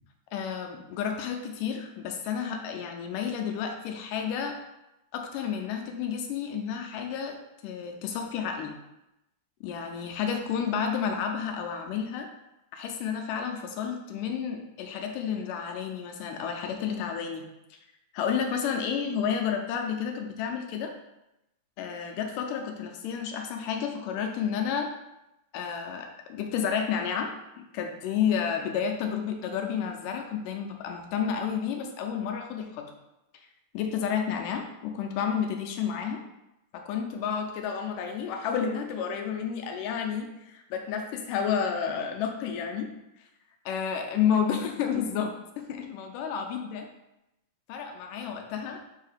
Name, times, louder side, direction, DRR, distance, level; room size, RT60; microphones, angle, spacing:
voice 1, 0.3-4.6 5.1-7.4 7.6-8.8 9.6-12.3 12.7-17.8 18.1-20.9 21.8-24.9 25.5-32.9 33.7-36.2 36.7-42.9 43.7-46.9 47.7-48.8, left 7 dB, 85° left, 3 dB, 2.2 m, -31 dB
6.9 x 2.8 x 5.0 m, 0.91 s
omnidirectional pair, 3.9 m